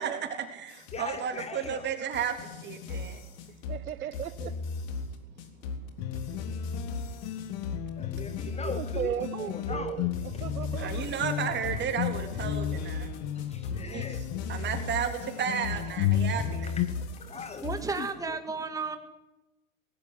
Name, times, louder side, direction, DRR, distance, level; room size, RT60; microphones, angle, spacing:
voice 1, 0.0-3.2 6.2-6.3 7.3-7.4 8.4-8.5 9.7-9.8 10.8-13.1 13.8-16.7, right 8 dB, 25° right, 3.5 m, -33 dB
sound 1, 0.7-18.1, left 4 dB, 55° left, 3.7 m, -37 dB
voice 2, 0.9-1.9 8.0-10.0 10.3-10.4 13.3-14.3 16.6-17.0 17.2-17.7 18.0-18.4, left 5 dB, 15° left, 0.9 m, -40 dB
voice 3, 3.7-4.5 8.5-11.0, right 10 dB, 90° right, 1.2 m, -36 dB
sound 2, 6.0-16.9, left 10 dB, 35° left, 1.4 m, -34 dB
voice 4, 17.6-19.0, right 4 dB, 10° right, 2.0 m, -33 dB
19.0 x 15.5 x 10.0 m
hypercardioid pair, 125°, 42 cm